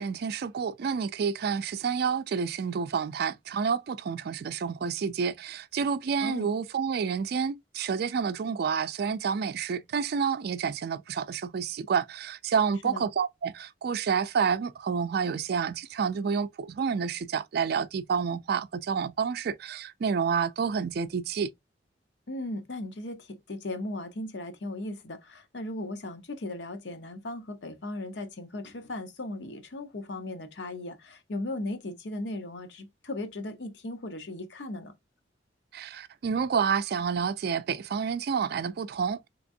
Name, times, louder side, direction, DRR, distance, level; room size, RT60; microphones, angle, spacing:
voice 1, 0.0-21.5 35.7-39.3, right 6 dB, 60° right, 0.4 m, -29 dB
voice 2, 22.3-34.9, left 2 dB, 70° left, 0.8 m, -37 dB
3.5 x 2.9 x 2.5 m
head